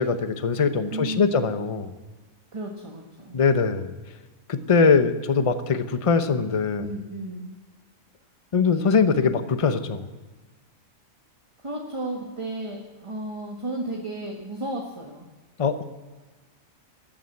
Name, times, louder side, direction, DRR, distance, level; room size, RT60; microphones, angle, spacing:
voice 1, 0.0-1.9 3.3-3.9 4.5-6.8 8.5-10.1 15.6-15.8, left 5 dB, 30° left, 10 dB, 0.8 m, -22 dB
voice 2, 0.9-1.4 2.5-3.4 6.8-7.5 11.6-15.3, right 1 dB, 25° right, 1 dB, 1.5 m, -33 dB
14.5 x 8.8 x 9.2 m, 1.3 s
omnidirectional pair, 1.4 m